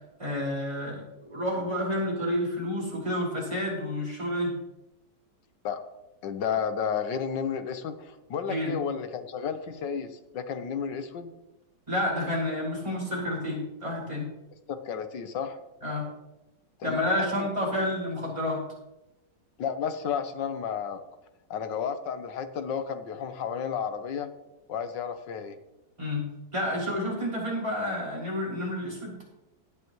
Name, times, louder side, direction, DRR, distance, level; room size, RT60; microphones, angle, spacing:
voice 1, 0.2-1.0 1.3-4.5 8.5-8.7 11.9-14.3 15.8-16.1 16.8-18.6 26.0-26.3 26.5-29.2, left 1 dB, 15° right, -5 dB, 5.6 m, -29 dB
voice 2, 6.2-11.3 14.7-15.6 16.8-17.0 17.4-17.5 19.6-21.0 21.5-24.3 24.7-25.6, left 7 dB, 90° left, 9 dB, 1.6 m, -32 dB
17.5 x 10.5 x 3.1 m, 0.98 s
omnidirectional pair, 1.9 m